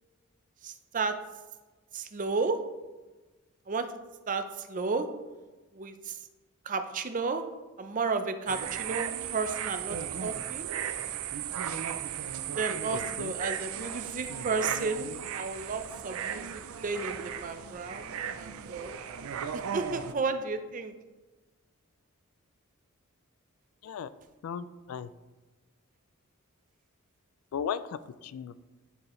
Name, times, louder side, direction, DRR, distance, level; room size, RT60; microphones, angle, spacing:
voice 1, 0.6-1.2 1.9-2.6 3.7-3.9 4.3-5.1 5.7-6.2 6.7-7.4 7.8-10.7 12.5-18.9 19.7-20.9, right 4 dB, 40° right, 8 dB, 0.5 m, -33 dB
sound 1, 8.5-20.1, right 8 dB, 85° right, 0.4 m, -36 dB
voice 2, 12.9-13.3 23.8-24.1 24.4-25.1 27.5-28.6, left 7 dB, 85° left, 15 dB, 0.3 m, -36 dB
9.9 x 4.7 x 3.1 m, 1.2 s
head